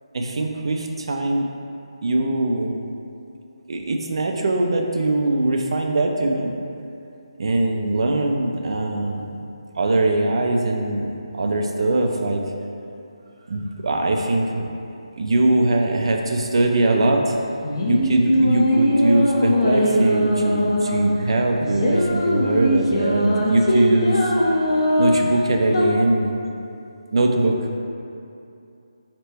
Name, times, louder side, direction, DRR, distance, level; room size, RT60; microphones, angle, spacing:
voice 1, 0.1-1.5 2.0-2.7 3.7-6.5 7.4-9.4 9.8-12.4 13.5-14.7 15.1-17.4 17.9-24.3 25.0-26.3 27.1-27.6, right 2 dB, 55° right, 2 dB, 0.4 m, -21 dB
sound 1, 17.4-25.9, equal, 45° left, 0.6 m, -21 dB
4.3 x 2.9 x 3.3 m, 2.6 s
figure-of-eight pair, 165°, 3 cm